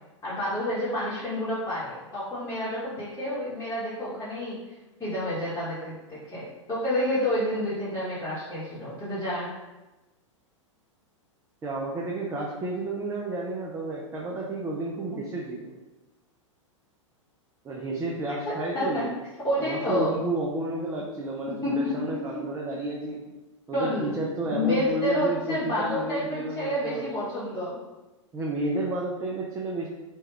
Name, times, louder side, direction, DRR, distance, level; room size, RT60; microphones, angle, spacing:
voice 1, 0.2-4.6 5.0-9.5 18.7-19.0 19.4-20.2 21.5-22.4 23.7-24.2 24.5-27.8, left 1 dB, 20° left, -11 dB, 1.0 m, -29 dB
voice 2, 11.6-15.7 17.6-19.1 19.6-23.2 23.7-27.1 28.3-29.9, right 2 dB, 15° right, -3 dB, 0.4 m, -31 dB
3.1 x 2.3 x 3.4 m, 1.1 s
hypercardioid pair, 105°, 16 cm